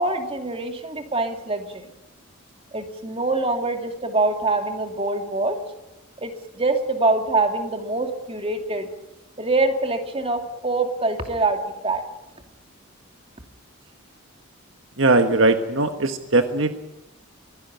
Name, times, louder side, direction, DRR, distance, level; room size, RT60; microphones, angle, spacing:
voice 1, 0.0-1.9 2.7-5.6 6.2-8.9 9.4-12.0, right 2 dB, 25° right, 5 dB, 2.5 m, -24 dB
voice 2, 15.0-16.7, right 2 dB, 60° right, 7 dB, 1.3 m, -19 dB
23.5 x 16.5 x 8.8 m, 1.0 s
head